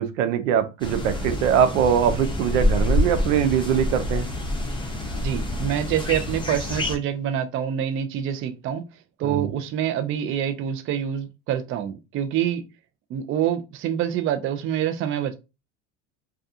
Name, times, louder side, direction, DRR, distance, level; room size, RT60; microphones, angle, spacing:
voice 1, 0.0-4.3 9.2-9.5, right 8 dB, 85° right, 0.6 m, -22 dB
sound 1, 0.8-7.0, left 1 dB, 15° left, 0.7 m, -26 dB
voice 2, 5.2-8.8 9.2-12.6 13.1-15.3, right 10 dB, 35° right, 0.4 m, -26 dB
2.3 x 2.3 x 2.6 m
supercardioid pair, 95°, 38 cm